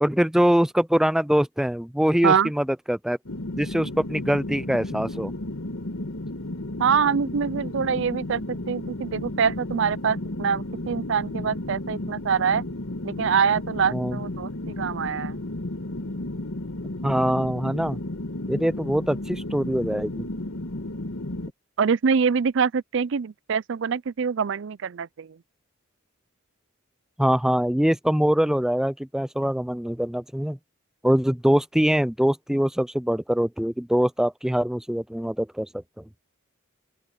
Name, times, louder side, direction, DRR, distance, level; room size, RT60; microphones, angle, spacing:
voice 1, 0.0-3.2 3.6-5.3 13.9-14.2 17.0-18.0 18.5-20.3 27.2-30.6 31.0-35.7, equal, ahead, 0.3 m, -23 dB
sound 1, 3.2-21.5, left 1 dB, 80° left, 1.6 m, -33 dB
voice 2, 6.8-12.6 13.0-15.4 21.8-25.4, right 6 dB, 60° right, 0.5 m, -24 dB
open air
head